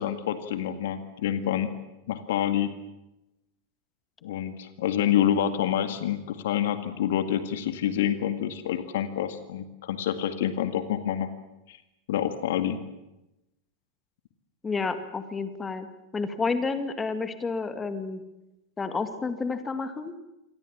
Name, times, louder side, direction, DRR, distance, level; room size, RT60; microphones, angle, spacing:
voice 1, 0.0-1.7 2.1-2.7 4.2-11.3 11.7-11.8 12.1-12.8, left 10 dB, 55° left, 10 dB, 2.0 m, -27 dB
voice 2, 14.6-15.9 16.1-18.2 18.8-20.1, left 4 dB, 15° left, 10 dB, 2.2 m, -30 dB
28.0 x 24.5 x 7.5 m, 0.92 s
figure-of-eight pair, 90°, 0 cm